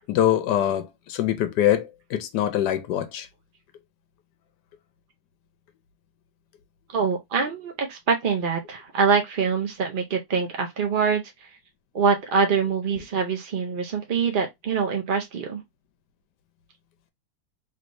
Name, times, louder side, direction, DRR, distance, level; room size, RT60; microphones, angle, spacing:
voice 1, 0.1-3.3, left 11 dB, 85° left, 1.3 m, -24 dB
voice 2, 6.9-11.5 11.9-15.6, right 5 dB, 70° right, 0.4 m, -24 dB
3.3 x 3.2 x 2.5 m
omnidirectional pair, 1.8 m